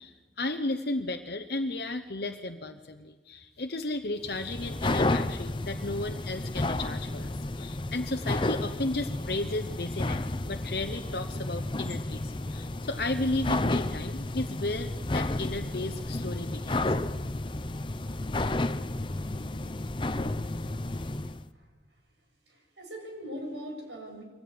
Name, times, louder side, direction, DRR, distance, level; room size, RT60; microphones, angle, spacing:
voice 1, 0.0-16.8, left 2 dB, 60° left, 6 dB, 0.9 m, -34 dB
sound 1, 4.2-21.4, left 2 dB, 25° left, 0.7 m, -32 dB
voice 2, 21.2-21.7 22.5-24.2, equal, 85° right, 2 dB, 7.9 m, -41 dB
23.0 x 18.0 x 9.6 m, 1.3 s
head